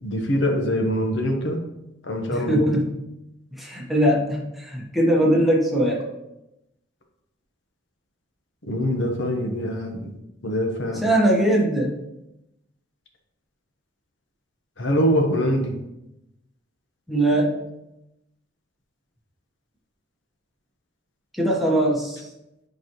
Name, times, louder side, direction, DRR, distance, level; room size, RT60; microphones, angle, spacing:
voice 1, 0.0-1.6 2.0-2.8 8.7-10.1 10.4-11.0 14.8-15.7, equal, 75° left, 2 dB, 1.1 m, -24 dB
voice 2, 2.3-3.0 3.5-6.1 11.0-11.9 17.1-17.6 21.3-22.3, right 1 dB, ahead, -4 dB, 1.2 m, -21 dB
10.0 x 4.7 x 3.1 m, 0.90 s
head